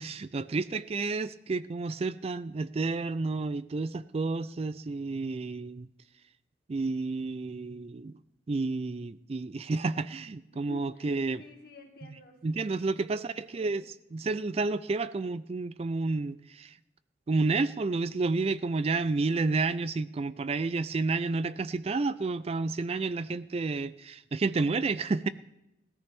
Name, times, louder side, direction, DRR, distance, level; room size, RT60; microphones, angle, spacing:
voice 1, 0.0-5.9 6.7-8.2 8.5-11.4 12.4-13.8 14.1-16.7 17.3-25.3, right 3 dB, 35° right, 15 dB, 0.4 m, -30 dB
voice 2, 10.5-13.2 13.5-13.8, left 2 dB, 55° left, 2 dB, 2.1 m, -51 dB
17.5 x 13.5 x 3.5 m, 0.86 s
head